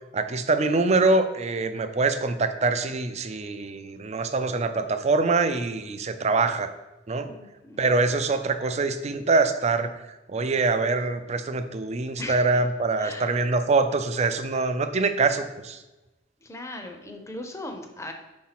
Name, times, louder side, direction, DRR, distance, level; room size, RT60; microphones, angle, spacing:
voice 1, 0.1-6.7 7.1-7.3 7.8-9.9 10.3-15.8, right 3 dB, 35° right, 9 dB, 0.5 m, -24 dB
voice 2, 7.2-8.0 12.2-12.6 13.0-13.3 16.4-18.1, left 2 dB, 15° left, 4 dB, 0.7 m, -38 dB
4.6 x 4.3 x 5.9 m, 1.0 s
head